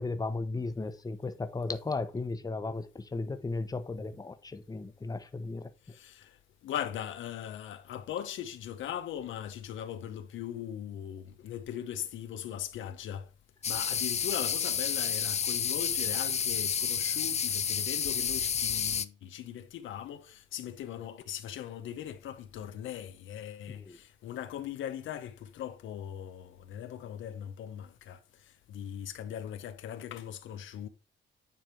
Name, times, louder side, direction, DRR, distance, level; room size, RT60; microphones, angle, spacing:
voice 1, 0.0-5.7 23.9-24.0, left 3 dB, 20° left, 0.9 m, -35 dB
voice 2, 5.8-13.3 13.7-30.9, left 10 dB, 75° left, 0.8 m, -40 dB
sound 1, 13.6-19.1, left 7 dB, 35° left, 0.5 m, -30 dB
9.2 x 3.4 x 4.4 m
cardioid pair, 90°, 20 cm